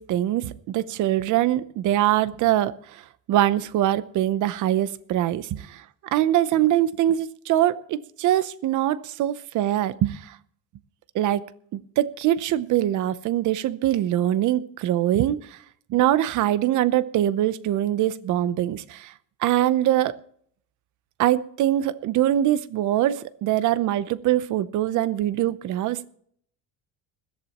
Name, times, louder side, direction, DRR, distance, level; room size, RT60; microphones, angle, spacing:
voice 1, 0.0-10.4 11.1-11.4 11.7-15.6 15.9-19.1 19.4-20.2 21.2-26.1, right 12 dB, 50° right, 16 dB, 0.8 m, -23 dB
21.0 x 14.5 x 3.0 m, 0.63 s
cardioid pair, 155°, 39 cm